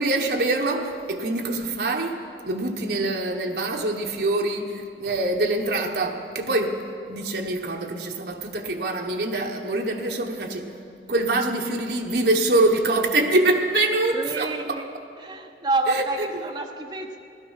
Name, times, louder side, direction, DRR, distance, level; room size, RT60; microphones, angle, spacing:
voice 1, 0.0-6.8 7.1-10.7 11.1-14.8 15.9-16.3, right 2 dB, 60° right, 1 dB, 1.0 m, -24 dB
voice 2, 14.1-14.9 15.2-17.2, right 2 dB, 25° right, 2 dB, 1.1 m, -28 dB
16.5 x 12.0 x 5.6 m, 2.5 s
head